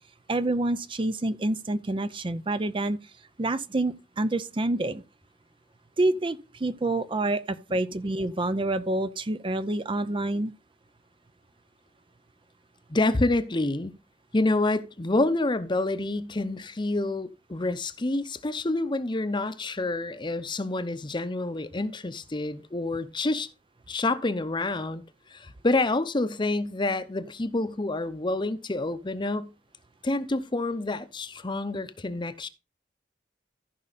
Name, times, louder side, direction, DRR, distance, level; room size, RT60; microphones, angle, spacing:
voice 1, 0.3-3.0 3.4-5.0 6.0-10.5, right 2 dB, 30° right, 0.5 m, -27 dB
voice 2, 12.9-13.9 14.3-23.5 23.9-25.0 25.3-29.5 30.0-32.5, left 2 dB, 25° left, 0.8 m, -28 dB
14.5 x 5.4 x 4.1 m
head